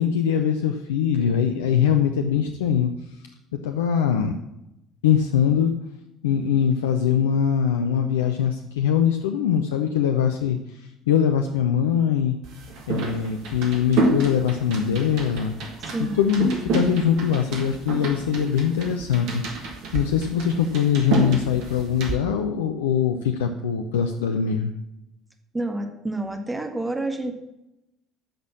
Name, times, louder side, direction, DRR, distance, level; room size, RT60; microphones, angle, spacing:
voice 1, 0.0-2.9 3.5-4.3 5.0-5.7 6.2-12.4 12.9-15.5 16.0-24.7, left 8 dB, 70° left, 6 dB, 0.6 m, -22 dB
sound 1, 12.4-22.1, right 3 dB, 55° right, 2.0 m, -29 dB
voice 2, 15.8-16.2 25.5-27.4, right 2 dB, 15° right, 5 dB, 1.7 m, -29 dB
10.5 x 6.2 x 7.2 m, 0.88 s
figure-of-eight pair, 55°, 0 cm